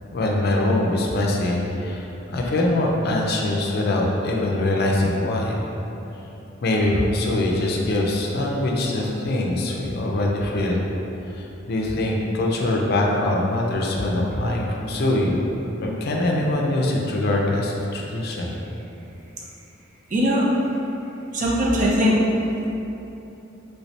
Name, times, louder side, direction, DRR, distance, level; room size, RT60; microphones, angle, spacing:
voice 1, 0.1-5.6 6.6-10.8 11.3-15.4 15.8-18.5, left 1 dB, 55° left, -1 dB, 0.4 m, -23 dB
voice 2, 20.1-20.5 21.3-22.2, equal, 40° right, -4 dB, 0.5 m, -20 dB
3.2 x 3.1 x 2.7 m, 2.9 s
head